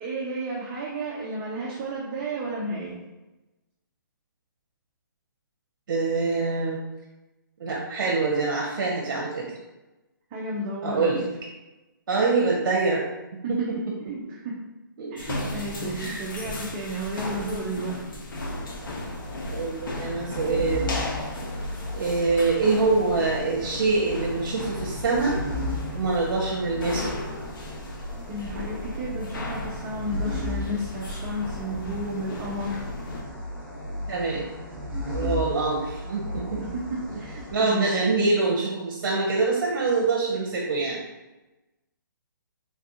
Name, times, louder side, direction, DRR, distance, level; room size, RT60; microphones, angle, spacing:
voice 1, 0.0-2.9 10.3-11.1 13.4-13.7 14.0-14.6 15.1-17.9 28.3-32.8 36.6-38.0, right 1 dB, 25° right, -4 dB, 0.4 m, -32 dB
voice 2, 5.9-6.8 7.6-9.5 10.8-11.2 12.1-13.0 13.5-13.6 15.0-15.1 16.0-16.3 19.5-20.9 21.9-25.3 25.9-27.1 34.1-34.5 35.1-36.6 37.5-41.0, right 3 dB, 65° right, -2 dB, 0.6 m, -25 dB
sound 1, 15.2-33.2, left 1 dB, 70° left, 0.7 m, -36 dB
sound 2, 18.3-37.5, left 1 dB, 5° right, 1.2 m, -35 dB
3.4 x 2.3 x 2.7 m, 1.0 s
hypercardioid pair, 155°, 11 cm